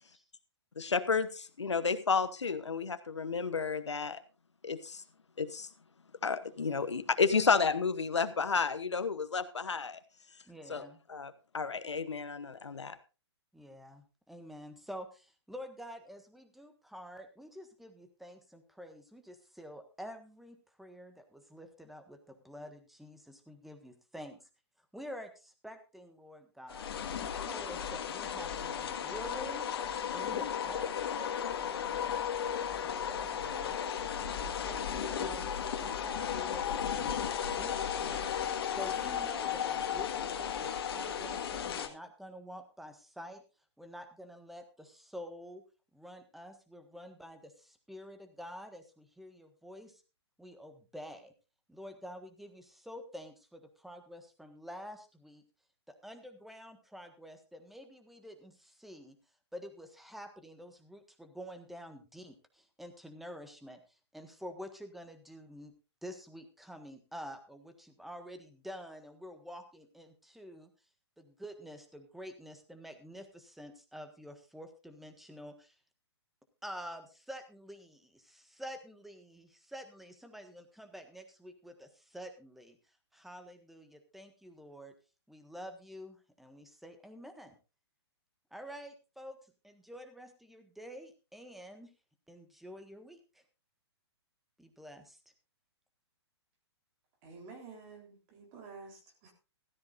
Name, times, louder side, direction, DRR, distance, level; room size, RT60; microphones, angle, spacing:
voice 1, 0.8-4.2 4.6-5.0 5.4-5.7 6.2-10.0 10.7-10.8 11.1-13.0, left 5 dB, 90° left, 11 dB, 1.1 m, -31 dB
voice 2, 10.4-11.0 13.5-24.5 24.9-26.9 27.2-29.7 30.1-32.3 32.8-33.8 34.4-38.2 38.7-43.4 43.8-45.6 45.9-50.0 50.4-51.3 51.7-55.4 55.9-59.2 59.5-63.8 64.1-65.7 66.0-70.7 71.2-75.8 76.6-82.8 83.1-84.9 85.3-87.6 88.5-89.4 89.6-91.9 92.3-93.4 94.6-95.2, equal, ahead, 7 dB, 1.5 m, -48 dB
sound 1, 26.7-41.9, left 8 dB, 60° left, 1.7 m, -35 dB
voice 3, 97.2-99.3, right 4 dB, 35° right, 1 dB, 3.8 m, -50 dB
16.0 x 13.5 x 2.6 m, 0.31 s
hypercardioid pair, 130°, 14 cm